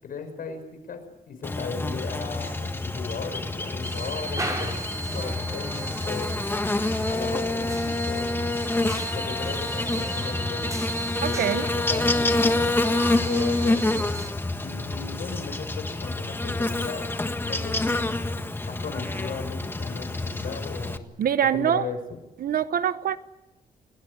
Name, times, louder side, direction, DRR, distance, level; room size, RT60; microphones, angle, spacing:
voice 1, 0.0-6.3 7.0-8.8 9.1-10.7 11.2-12.7 13.2-14.2 14.6-17.1 17.4-18.1 18.6-21.1 21.5-22.0, left 5 dB, 65° left, 7 dB, 6.1 m, -36 dB
Buzz, 1.4-21.0, left 2 dB, 15° left, 1.5 m, -27 dB
sound 1, 3.8-14.3, right 2 dB, 20° right, 6.6 m, -36 dB
voice 2, 11.2-11.6 21.2-21.9 22.4-23.2, right 9 dB, 70° right, 13 dB, 1.1 m, -24 dB
30.0 x 20.0 x 8.2 m, 1.0 s
wide cardioid pair, 145°, 16 cm